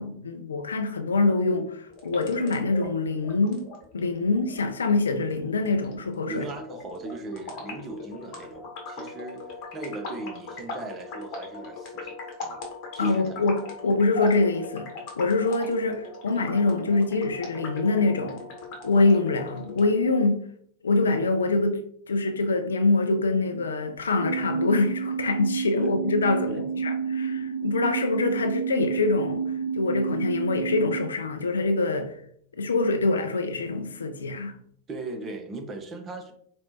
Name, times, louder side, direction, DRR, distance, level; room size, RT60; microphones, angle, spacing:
voice 1, 0.0-3.7 3.9-6.4 13.0-18.4 18.8-20.4 20.8-21.8 22.1-29.4 29.7-32.2 32.5-34.6, left 3 dB, 70° left, 0.4 m, -25 dB
sound 1, 1.9-19.9, left 3 dB, 40° left, 0.9 m, -40 dB
voice 2, 6.3-9.5 9.7-12.6 12.9-13.4 25.8-26.0 26.5-26.6 34.9-36.3, right 2 dB, 25° right, 0.5 m, -38 dB
sound 2, 24.2-31.0, right 6 dB, 85° right, 0.5 m, -30 dB
4.3 x 2.1 x 2.7 m
figure-of-eight pair, 90°, 0 cm